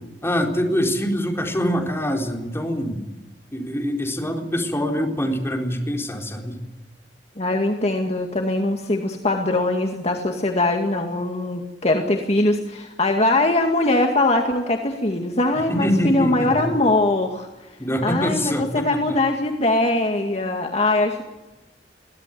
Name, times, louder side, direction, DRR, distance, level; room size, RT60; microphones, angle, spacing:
voice 1, 0.2-3.0 3.5-6.6 15.6-16.7 17.8-19.2, equal, 15° left, 2 dB, 4.2 m, -24 dB
voice 2, 7.4-17.5 18.0-21.2, left 2 dB, 40° left, 3 dB, 2.1 m, -21 dB
23.0 x 17.0 x 9.4 m, 1.1 s
head